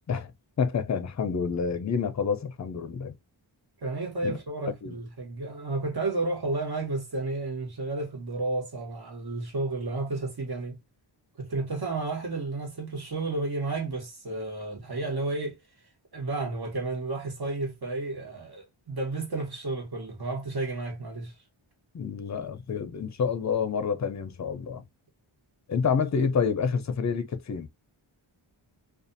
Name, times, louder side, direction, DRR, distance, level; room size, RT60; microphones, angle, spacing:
voice 1, 0.6-3.1 4.2-4.4 4.8-4.9 21.9-24.8 25.7-27.7, left 6 dB, 35° left, 0.5 m, -28 dB
voice 2, 3.8-10.8 11.4-15.6 16.1-21.3, right 3 dB, 50° right, 1.3 m, -32 dB
2.5 x 2.4 x 2.5 m
wide cardioid pair, 70°, 48 cm